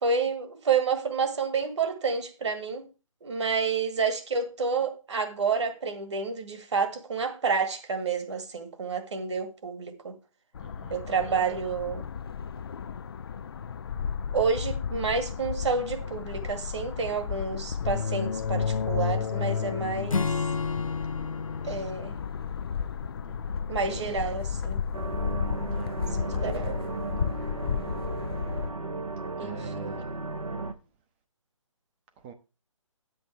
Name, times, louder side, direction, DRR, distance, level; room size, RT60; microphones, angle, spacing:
voice 1, 0.0-2.9 3.2-10.2 10.9-12.1 14.3-20.3 21.6-22.2 23.7-24.8 26.2-26.9 29.4-30.0, right 5 dB, 55° right, 1.9 m, -29 dB
sound 1, 10.5-28.7, left 6 dB, 45° left, 0.5 m, -33 dB
voice 2, 10.6-11.0 23.2-23.6 25.7-26.4 29.4-30.2 32.2-32.3, right 5 dB, 20° right, 0.8 m, -46 dB
Acoustic guitar / Strum, 20.1-23.6, left 5 dB, 80° left, 0.8 m, -32 dB
sound 2, 24.9-30.7, right 3 dB, 85° right, 1.3 m, -35 dB
11.0 x 7.8 x 3.3 m
figure-of-eight pair, 140°, 17 cm